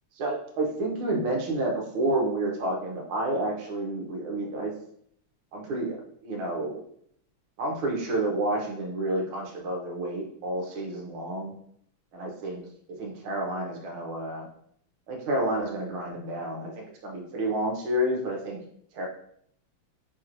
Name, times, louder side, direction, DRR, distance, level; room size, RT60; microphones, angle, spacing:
voice 1, 0.2-4.7 5.5-6.8 7.6-11.5 12.1-12.6 12.9-14.5 15.1-18.6 18.9-19.1, right 1 dB, 75° right, 0 dB, 1.7 m, -30 dB
5.9 x 2.9 x 2.5 m, 0.67 s
omnidirectional pair, 2.4 m